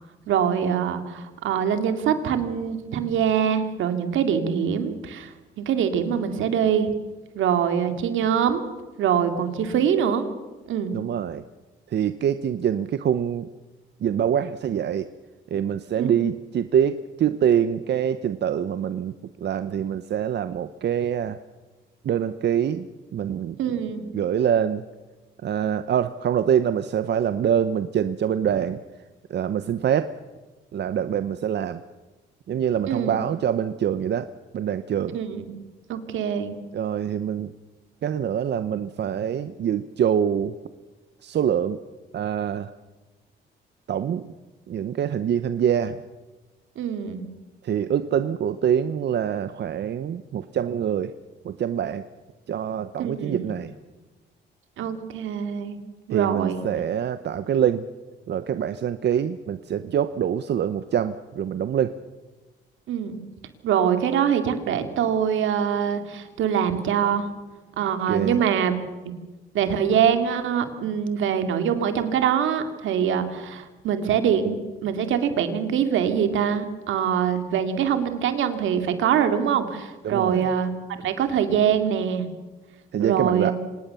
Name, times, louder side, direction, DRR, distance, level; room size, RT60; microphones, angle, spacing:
voice 1, 0.3-6.9 7.3-8.6 9.0-10.3 10.7-11.0 16.0-16.1 23.6-24.1 32.9-33.2 35.1-35.5 35.9-36.6 46.8-47.2 53.0-53.5 54.8-55.8 56.1-56.6 62.9-63.2 63.6-67.3 67.8-68.8 69.0-69.1 69.5-82.3 83.0-83.5, right 8 dB, 80° right, 8 dB, 2.5 m, -24 dB
voice 2, 10.9-11.4 11.9-13.5 14.0-15.1 15.5-21.4 22.0-23.6 24.1-24.8 25.4-28.8 29.3-30.1 30.7-31.8 32.5-35.2 36.7-37.5 38.0-40.5 41.2-41.8 42.1-42.7 43.9-44.3 44.7-46.0 47.6-51.1 51.4-52.0 52.5-53.7 56.1-57.8 58.3-61.9 68.1-68.4 80.0-80.5 82.9-83.5, right 9 dB, 60° right, 12 dB, 0.9 m, -25 dB
26.0 x 19.0 x 7.0 m, 1.2 s
cardioid pair, 90°, 20 cm